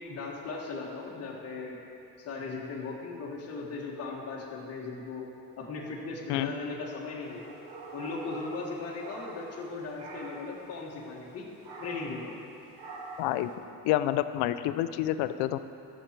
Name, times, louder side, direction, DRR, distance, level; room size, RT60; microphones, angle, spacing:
voice 1, 0.1-1.8 2.2-5.2 5.6-7.4 7.9-11.5 11.8-12.4, left 3 dB, 35° left, -3 dB, 1.7 m, -38 dB
sound 1, 7.3-9.7 10.0-10.5 11.6-12.2 12.8-13.3, right 3 dB, 70° right, 2.0 m, -44 dB
voice 2, 13.2-13.5 13.8-15.6, left 13 dB, 80° left, 12 dB, 0.6 m, -28 dB
14.5 x 6.4 x 4.5 m, 2.8 s
cardioid pair, 130°, 40 cm